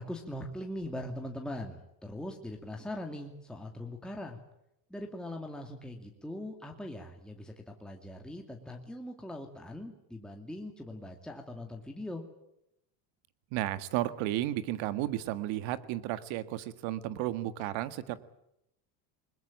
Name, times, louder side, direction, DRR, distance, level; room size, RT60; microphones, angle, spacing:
voice 1, 0.0-4.4 4.9-12.2, left 1 dB, ahead, 2 dB, 2.4 m, -41 dB
voice 2, 13.5-18.2, right 14 dB, 65° right, 13 dB, 1.8 m, -33 dB
21.0 x 21.0 x 9.0 m, 0.82 s
supercardioid pair, 120°, 49 cm